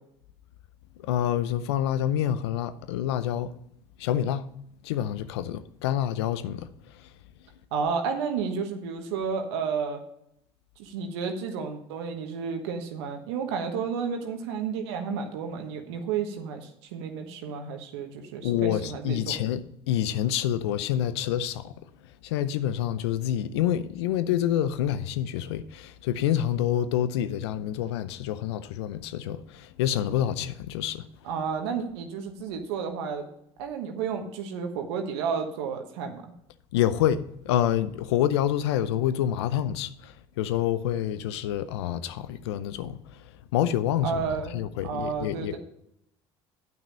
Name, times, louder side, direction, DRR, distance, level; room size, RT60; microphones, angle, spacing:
voice 1, 1.0-3.5 4.0-4.5 4.8-7.1 18.4-21.8 22.2-31.1 36.7-43.2 43.5-45.6, left 11 dB, 85° left, 0.6 m, -27 dB
voice 2, 7.7-10.0 10.8-19.4 31.2-33.3 33.6-36.3 44.0-45.6, right 6 dB, 80° right, 1.2 m, -31 dB
9.1 x 6.0 x 5.4 m
hypercardioid pair, 70°, 14 cm